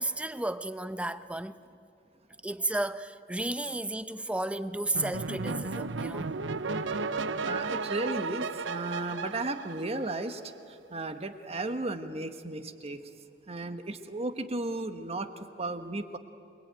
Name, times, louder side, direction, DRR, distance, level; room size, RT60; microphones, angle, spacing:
voice 1, 0.0-1.6 2.4-6.3, right 1 dB, 5° right, 0.7 m, -33 dB
sound 1, 4.9-10.4, right 4 dB, 90° right, 0.8 m, -34 dB
voice 2, 7.4-10.4 10.7-13.0 13.5-16.2, right 2 dB, 35° right, 1.4 m, -34 dB
27.5 x 21.5 x 9.2 m
head